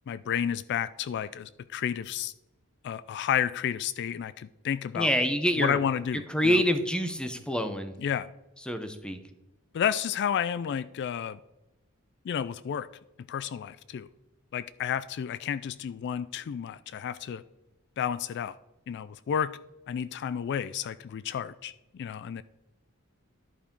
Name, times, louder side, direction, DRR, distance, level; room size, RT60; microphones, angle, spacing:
voice 1, 0.1-2.3 2.8-5.1 5.6-6.6 8.0-8.3 9.7-11.4 12.2-12.9 13.3-14.1 14.5-17.4 18.0-18.6 18.9-19.6 19.9-22.4, left 8 dB, 55° left, 16 dB, 0.3 m, -31 dB
voice 2, 4.9-5.8 6.3-7.9 8.7-9.2, equal, 5° left, 9 dB, 0.7 m, -26 dB
11.0 x 5.0 x 5.2 m, 0.97 s
head